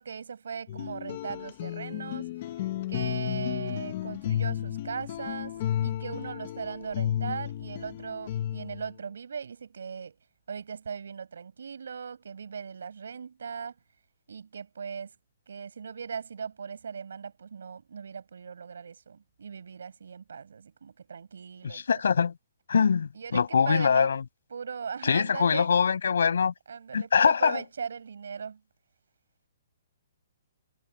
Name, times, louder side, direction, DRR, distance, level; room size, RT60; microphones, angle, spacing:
voice 1, 0.0-2.3 2.9-10.1 10.5-13.7 14.3-15.2 15.5-22.0 23.1-24.1 24.5-25.7 26.7-28.6, right 6 dB, 85° right, 6.9 m, -38 dB
sound 1, 0.7-8.9, left 11 dB, 35° left, 0.8 m, -33 dB
voice 2, 21.6-22.3 22.7-24.2 25.0-26.5 26.9-27.6, left 6 dB, 80° left, 6.3 m, -23 dB
hypercardioid pair, 175°, 0 cm